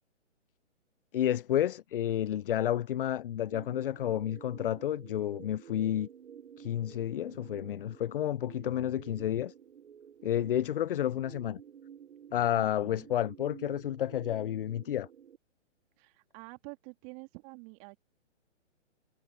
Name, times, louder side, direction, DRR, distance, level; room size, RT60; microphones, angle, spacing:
voice 1, 1.1-6.1 6.6-9.5 10.2-11.6 12.3-15.1, left 11 dB, 50° left, 0.5 m, -31 dB
sound 1, 3.5-15.4, right 8 dB, 65° right, 1.1 m, -51 dB
voice 2, 12.6-13.1 16.0-18.0, right 32 dB, 30° right, 2.1 m, -48 dB
hypercardioid pair, 135°, 37 cm